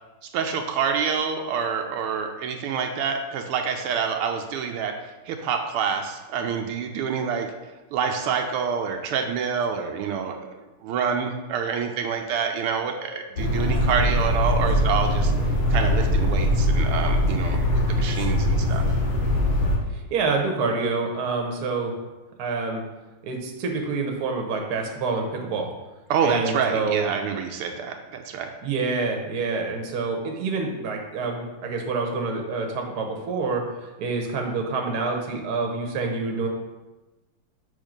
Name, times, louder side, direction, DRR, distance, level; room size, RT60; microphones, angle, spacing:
voice 1, 0.3-4.9 5.3-7.5 7.9-10.4 10.8-15.3 15.7-17.6 17.9-18.8 26.1-28.5, right 6 dB, 85° right, 4 dB, 1.5 m, -27 dB
sound 1, 13.4-19.8, left 1 dB, 85° left, 2.1 m, -22 dB
voice 2, 19.9-21.9 22.4-22.8 23.2-25.7 26.2-27.0 28.6-36.5, right 4 dB, 55° right, 2 dB, 1.2 m, -27 dB
6.4 x 3.5 x 5.1 m, 1.1 s
omnidirectional pair, 2.4 m